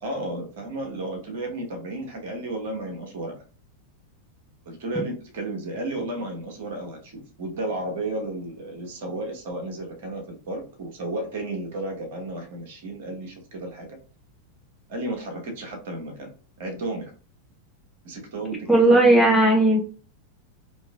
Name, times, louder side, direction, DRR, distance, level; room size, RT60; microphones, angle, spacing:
voice 1, 0.0-3.4 4.6-14.0 14.9-16.3 16.6-17.1 18.0-18.7, right 2 dB, 55° right, 3 dB, 1.0 m, -33 dB
voice 2, 18.7-19.8, right 1 dB, ahead, -2 dB, 0.7 m, -16 dB
3.0 x 2.8 x 2.3 m, 0.37 s
figure-of-eight pair, 90°, 0 cm